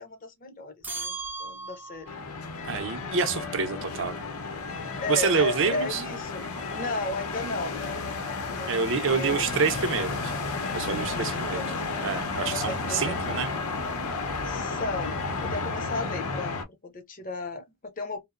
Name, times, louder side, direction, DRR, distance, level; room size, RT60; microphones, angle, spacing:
voice 1, 0.0-2.1 5.0-6.5 6.7-7.9 8.4-9.6 10.9-11.9 12.5-13.4 14.4-15.2 15.4-18.2, left 3 dB, 40° left, 0.6 m, -35 dB
sound 1, 0.8-2.2, right 4 dB, 10° right, 0.4 m, -36 dB
sound 2, 2.1-16.6, left 3 dB, 85° left, 0.6 m, -32 dB
voice 2, 2.6-4.3 5.1-6.0 8.7-10.3 10.7-11.6 12.0-13.5, right 5 dB, 60° right, 0.5 m, -27 dB
2.8 x 2.0 x 2.3 m
head